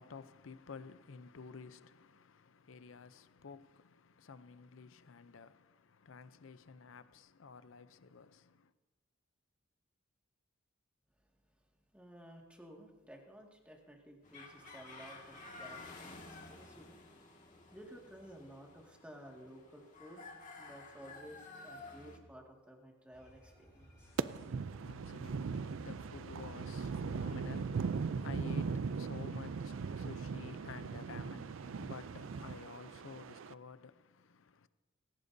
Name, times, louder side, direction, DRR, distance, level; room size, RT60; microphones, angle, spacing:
voice 1, 0.0-8.7 24.1-34.7, left 5 dB, 70° left, 0.6 m, -52 dB
voice 2, 11.9-17.0 17.7-20.3 20.6-24.1, equal, 5° right, 2.0 m, -54 dB
sound 1, 14.2-22.2, left 3 dB, 40° left, 2.0 m, -52 dB
sound 2, 23.1-28.7, equal, 15° left, 5.3 m, -56 dB
sound 3, 24.2-33.5, right 5 dB, 70° right, 0.4 m, -39 dB
19.5 x 18.0 x 2.7 m
head